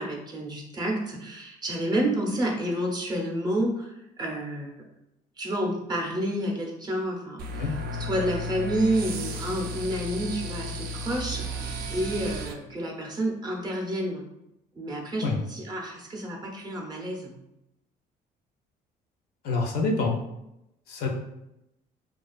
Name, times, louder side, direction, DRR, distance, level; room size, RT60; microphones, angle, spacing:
voice 1, 0.0-4.7 5.4-14.2 14.7-17.3, right 1 dB, 25° right, 0 dB, 0.6 m, -30 dB
sound 1, 7.4-12.5, equal, 65° right, 0.4 m, -34 dB
voice 2, 19.4-20.1 20.9-21.1, left 3 dB, 65° left, 0 dB, 0.6 m, -26 dB
2.4 x 2.3 x 2.3 m, 0.87 s
cardioid pair, 110°, 17 cm